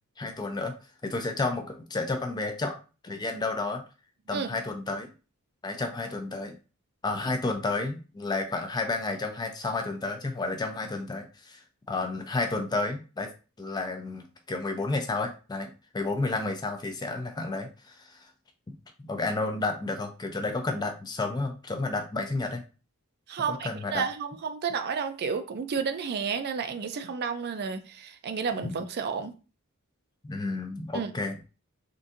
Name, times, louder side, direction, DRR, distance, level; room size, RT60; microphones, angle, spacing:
voice 1, 0.2-0.7 1.0-2.8 3.0-3.8 4.3-5.1 5.6-6.6 7.0-13.3 13.6-18.3 18.7-18.8 19.0-22.6 23.4-24.1 28.6-28.7 30.2-31.4, left 3 dB, 20° left, 0.4 m, -31 dB
voice 2, 23.3-29.3 30.9-31.1, right 6 dB, 45° right, 0.4 m, -31 dB
3.6 x 2.6 x 2.5 m
head